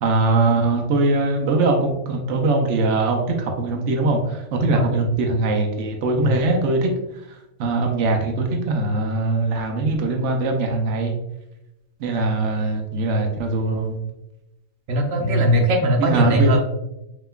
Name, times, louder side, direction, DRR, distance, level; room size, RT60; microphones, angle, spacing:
voice 1, 0.0-6.9 7.3-11.1 12.0-14.0 15.2-15.7 16.0-16.6, right 3 dB, 70° right, 2 dB, 0.9 m, -21 dB
voice 2, 4.6-4.9 6.2-6.3 14.9-16.6, left 1 dB, 85° right, 1 dB, 1.2 m, -20 dB
5.5 x 2.9 x 2.3 m, 0.91 s
omnidirectional pair, 1.3 m